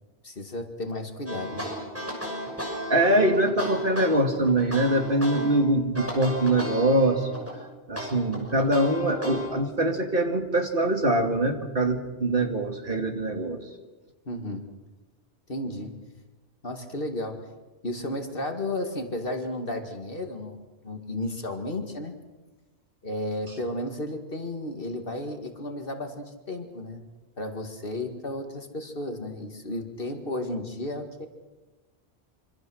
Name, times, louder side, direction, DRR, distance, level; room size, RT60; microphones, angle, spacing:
voice 1, 0.2-1.7 14.3-14.7 15.5-16.0 16.6-17.5 17.8-22.1 23.0-27.0 27.4-31.3, left 1 dB, 50° left, 5 dB, 2.3 m, -33 dB
sound 1, 1.3-5.6 5.9-7.6 8.0-9.5, equal, 10° right, 6.2 m, -35 dB
voice 2, 2.9-7.2 7.9-13.6, right 1 dB, 50° right, 4 dB, 2.4 m, -23 dB
26.0 x 25.0 x 6.4 m, 1.2 s
omnidirectional pair, 1.2 m